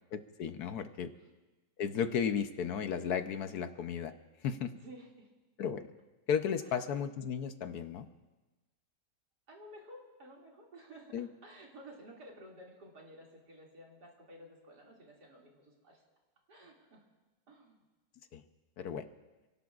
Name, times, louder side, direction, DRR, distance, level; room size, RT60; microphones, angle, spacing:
voice 1, 0.1-1.1 1.8-4.1 4.4-4.7 5.6-5.8 6.3-8.1 11.1-11.3 18.3-18.4 18.8-19.0, left 7 dB, 70° left, 9 dB, 1.2 m, -34 dB
voice 2, 4.7-5.3 6.6-6.9 9.5-16.0 16.5-17.0 17.5-17.8, right 1 dB, 70° right, -2 dB, 3.1 m, -53 dB
29.0 x 18.0 x 2.4 m, 1.2 s
omnidirectional pair, 1.8 m